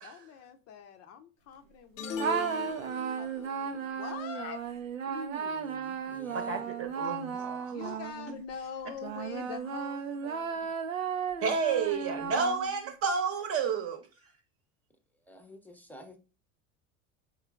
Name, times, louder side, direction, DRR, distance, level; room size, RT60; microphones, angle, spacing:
voice 1, 0.0-4.6 7.6-10.7, left 7 dB, 40° left, 0.6 m, -44 dB
sound 1, 2.0-3.5, left 4 dB, 75° left, 0.7 m, -38 dB
sound 2, 2.2-8.4 9.0-12.9, right 6 dB, 85° right, 0.6 m, -35 dB
voice 2, 5.1-6.6 15.3-16.2, right 4 dB, 5° left, 0.7 m, -46 dB
voice 3, 6.3-8.0 11.4-14.0, right 5 dB, 35° right, 0.9 m, -31 dB
4.5 x 3.0 x 2.3 m
figure-of-eight pair, 75°, 39 cm